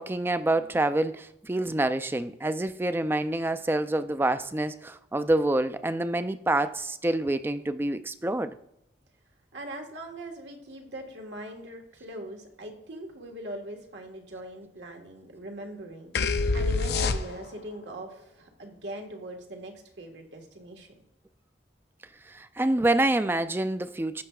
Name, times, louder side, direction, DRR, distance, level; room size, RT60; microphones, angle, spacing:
voice 1, 0.0-8.6 22.3-24.2, right 1 dB, 10° right, 12 dB, 0.3 m, -27 dB
voice 2, 9.5-20.9, right 1 dB, 90° right, 2 dB, 1.5 m, -41 dB
sound 1, 16.2-17.7, left 4 dB, 60° left, 0.5 m, -26 dB
15.5 x 5.6 x 2.3 m, 0.78 s
head